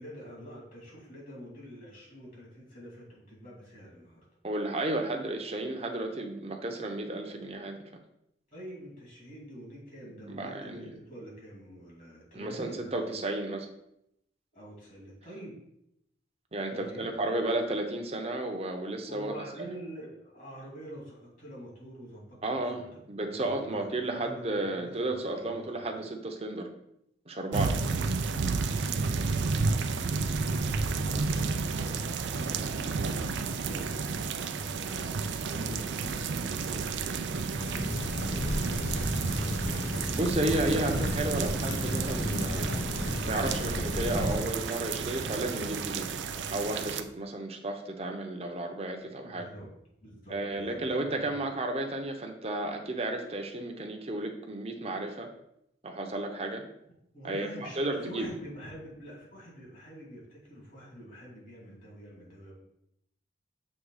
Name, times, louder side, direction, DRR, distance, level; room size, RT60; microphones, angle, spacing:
voice 1, 0.0-4.2 8.5-12.8 14.5-15.6 16.7-17.1 17.4-17.7 19.1-22.8 23.3-26.0 27.6-27.8 28.1-37.8 49.2-49.7 50.0-50.8 51.1-51.4 57.1-62.5, equal, 45° left, -4 dB, 2.5 m, -46 dB
voice 2, 4.4-7.8 10.3-10.9 12.3-13.7 16.5-19.3 22.4-26.7 27.3-27.7 40.2-42.7 43.2-46.1 46.5-49.4 50.3-55.3 55.8-56.6 57.2-58.3, right 2 dB, 35° right, 3 dB, 0.8 m, -33 dB
sound 1, 27.5-47.0, right 4 dB, 85° right, 0.5 m, -32 dB
sound 2, 37.6-44.4, equal, 70° left, 1.1 m, -32 dB
6.6 x 3.5 x 4.8 m, 0.79 s
head